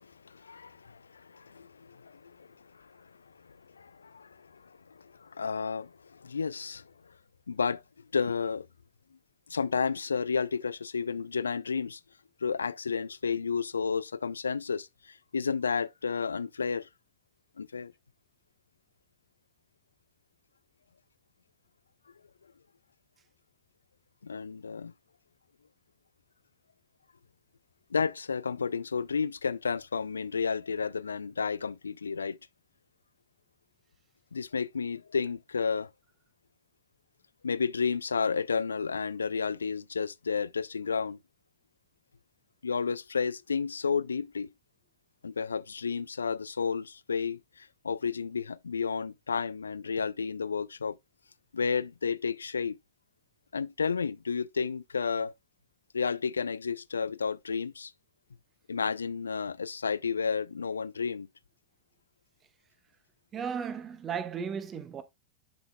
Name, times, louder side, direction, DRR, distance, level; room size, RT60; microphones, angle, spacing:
voice 1, 0.0-2.5 2.8-3.1 3.8-6.8 7.5-7.8 8.1-8.7 9.5-12.0 12.4-16.9 17.6-17.9 24.2-24.9 27.9-32.4 34.3-35.9 37.4-41.2 42.6-44.5 45.2-51.0 51.5-52.8 53.5-55.3 55.9-57.9 58.7-61.3, left 5 dB, 75° left, 0.4 m, -32 dB
voice 2, 63.3-65.0, right 7 dB, 25° right, 1.2 m, -35 dB
10.5 x 5.6 x 2.3 m
figure-of-eight pair, 90°, 0 cm